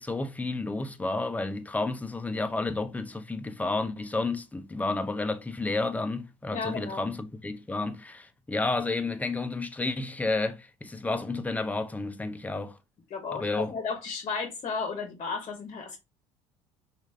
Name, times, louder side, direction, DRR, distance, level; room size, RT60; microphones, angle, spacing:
voice 1, 0.0-12.8 13.3-13.7, left 3 dB, 10° left, 0.5 m, -31 dB
voice 2, 6.5-7.1 13.1-16.0, left 5 dB, 45° left, 0.9 m, -34 dB
3.1 x 2.4 x 3.2 m
supercardioid pair, 80°, 15 cm